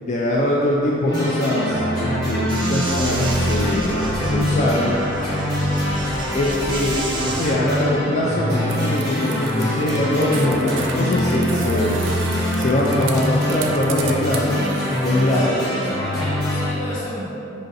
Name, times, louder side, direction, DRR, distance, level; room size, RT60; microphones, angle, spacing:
voice 1, 0.0-5.0 6.3-12.1 12.6-14.6 15.0-15.5, left 1 dB, 40° left, -4 dB, 0.4 m, -22 dB
sound 1, 1.1-16.7, equal, 20° left, 1.4 m, -24 dB
sound 2, 2.5-7.5, right 2 dB, 25° right, 0.5 m, -31 dB
sound 3, 8.7-15.3, right 6 dB, 90° right, 0.4 m, -35 dB
voice 2, 15.2-17.3, equal, 80° left, -8 dB, 1.3 m, -30 dB
5.0 x 2.7 x 3.9 m, 2.9 s
head